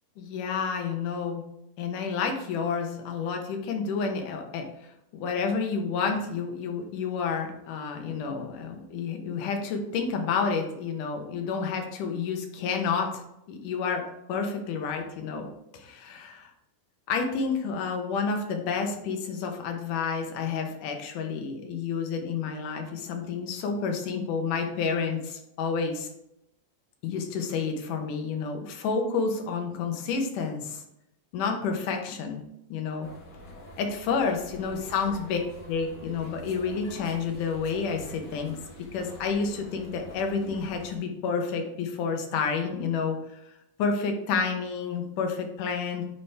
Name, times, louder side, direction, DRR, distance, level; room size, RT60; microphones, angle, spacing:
voice 1, 0.2-1.4 1.8-4.7 5.1-13.2 13.5-15.5 15.7-16.5 17.1-26.1 27.0-30.8 31.3-32.4 32.7-33.1 33.8-35.4 35.7-43.4 43.8-46.1, left 5 dB, 80° left, 4 dB, 2.5 m, -30 dB
sound 1, 33.0-41.0, equal, 60° left, 0.8 m, -46 dB
9.1 x 4.2 x 3.4 m, 0.83 s
omnidirectional pair, 3.6 m